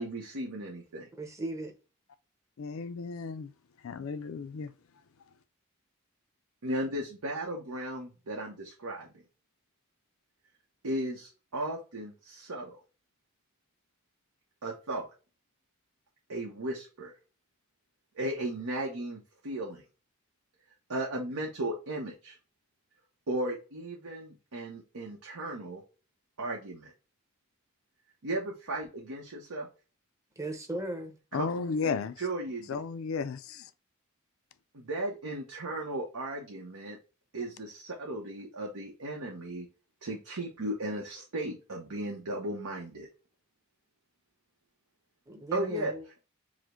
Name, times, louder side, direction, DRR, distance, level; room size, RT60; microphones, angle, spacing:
voice 1, 0.0-1.1 6.6-9.1 10.8-12.7 14.6-15.1 16.3-17.1 18.1-19.8 20.9-22.4 23.3-25.8 26.4-26.9 28.2-29.7 31.3-31.4 32.2-32.8 34.7-37.0 37.3-39.7 40.0-43.1 45.5-46.2, right 1 dB, 90° right, 0.9 m, -36 dB
voice 2, 1.1-1.7 30.4-31.2 45.3-46.0, right 1 dB, 15° right, 0.7 m, -37 dB
voice 3, 2.6-3.5 3.8-4.7 31.3-32.2 32.7-33.4, left 5 dB, 65° left, 0.4 m, -33 dB
4.9 x 2.1 x 3.6 m
head